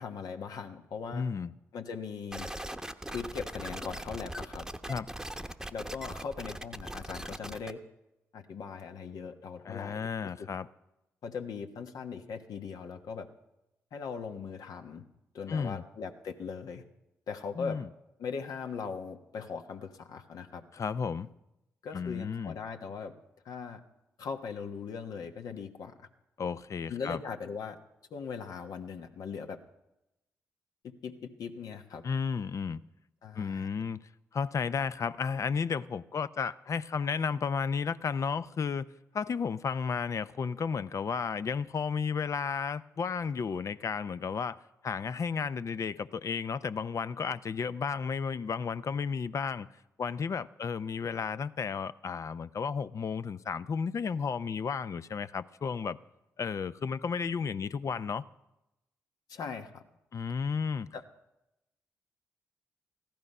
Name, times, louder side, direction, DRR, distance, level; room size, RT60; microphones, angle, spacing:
voice 1, 0.0-1.2 1.7-2.5 3.1-4.7 5.7-7.8 8.3-9.9 10.2-10.5 11.2-13.3 13.9-15.0 15.3-16.8 17.3-17.8 18.2-20.6 21.8-23.1 23.4-23.8 24.2-25.9 26.9-27.8 28.1-29.6 30.8-32.0 33.2-33.7 59.3-59.8 60.9-61.0, left 5 dB, 70° left, 1.2 m, -39 dB
voice 2, 1.1-1.5 4.9-5.1 9.6-10.7 15.5-15.8 17.6-17.9 20.7-21.3 21.9-22.5 26.4-27.2 32.0-32.8 33.3-38.9 39.1-49.7 50.0-56.0 56.4-58.2 60.1-60.9, left 6 dB, 50° left, 0.6 m, -33 dB
sound 1, 2.3-7.7, right 1 dB, 10° right, 0.9 m, -40 dB
15.0 x 12.5 x 5.4 m
supercardioid pair, 45°, 7 cm